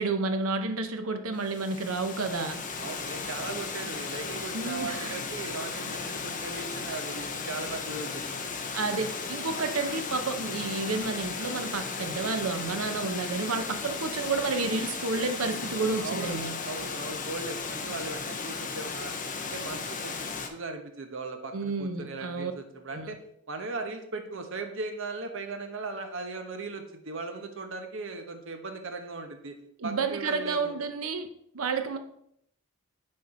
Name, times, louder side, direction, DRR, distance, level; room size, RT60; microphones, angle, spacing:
voice 1, 0.0-2.6 4.5-5.2 8.7-16.5 21.5-22.5 22.9-23.1 29.8-31.3 31.5-32.0, right 4 dB, 90° right, 7 dB, 0.8 m, -30 dB
Water, 1.4-20.5, left 5 dB, 40° left, 0.7 m, -35 dB
voice 2, 2.8-8.3 16.0-19.1 19.4-23.2 23.5-29.6 29.8-30.8, right 3 dB, 65° right, 6 dB, 0.9 m, -38 dB
6.4 x 4.3 x 4.2 m, 0.71 s
head